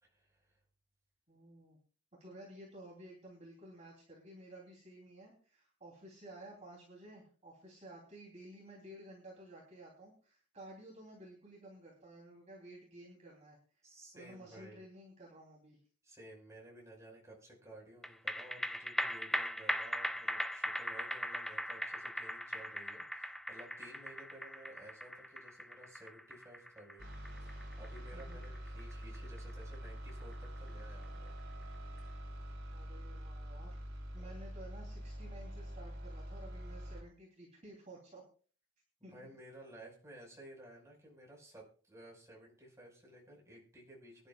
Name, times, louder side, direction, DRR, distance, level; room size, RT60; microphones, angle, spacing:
voice 1, 0.0-0.6 13.8-14.8 16.0-27.1 27.4-31.4 34.2-34.3 39.1-44.3, right 1 dB, 15° right, -2 dB, 5.3 m, -55 dB
voice 2, 1.3-1.8 2.2-13.6 14.1-15.8 28.1-28.5 32.7-33.8 34.1-38.2 39.0-39.1, right 1 dB, 30° right, -2 dB, 3.3 m, -53 dB
sound 1, 18.0-30.7 31.0-31.1, equal, ahead, 0.5 m, -40 dB
sound 2, 27.0-37.0, equal, 55° right, 5.5 m, -45 dB
24.5 x 11.0 x 2.4 m, 0.41 s
head